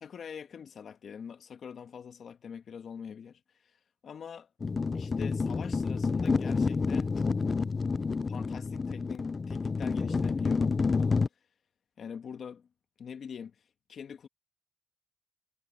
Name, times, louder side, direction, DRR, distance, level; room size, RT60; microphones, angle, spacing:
voice 1, 0.0-3.4 4.0-4.5 4.9-7.4 8.3-10.7 11.0-11.3 12.0-12.7 13.0-13.6 13.9-14.3, left 7 dB, 55° left, 1.9 m, -44 dB
sound 1, 4.6-11.3, left 4 dB, 30° left, 0.6 m, -29 dB
cardioid pair, 90°, 0 cm